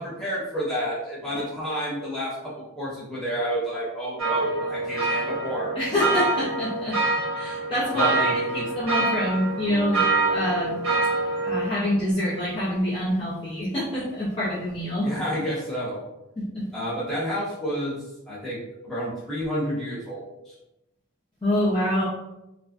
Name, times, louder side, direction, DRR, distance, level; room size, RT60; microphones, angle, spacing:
voice 1, 0.0-5.7 7.9-8.6 15.0-16.0 16.7-18.0 18.3-18.6 18.8-20.5, equal, ahead, -10 dB, 0.9 m, -30 dB
sound 1, 4.2-11.6, right 3 dB, 70° right, 0.6 m, -26 dB
voice 2, 5.8-7.0 7.3-10.8 11.4-15.1 16.4-16.6 21.4-22.0, left 1 dB, 25° left, -9 dB, 0.4 m, -26 dB
sound 2, 9.7-12.9, equal, 75° left, 0.7 m, -43 dB
2.4 x 2.0 x 2.5 m, 0.92 s
head